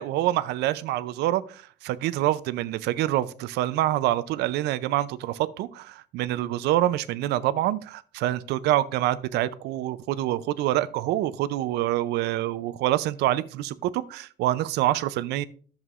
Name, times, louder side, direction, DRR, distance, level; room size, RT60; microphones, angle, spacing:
voice 1, 0.0-15.4, right 14 dB, 85° right, 16 dB, 0.5 m, -26 dB
11.0 x 7.2 x 2.5 m, 0.42 s
cardioid pair, 110°, 17 cm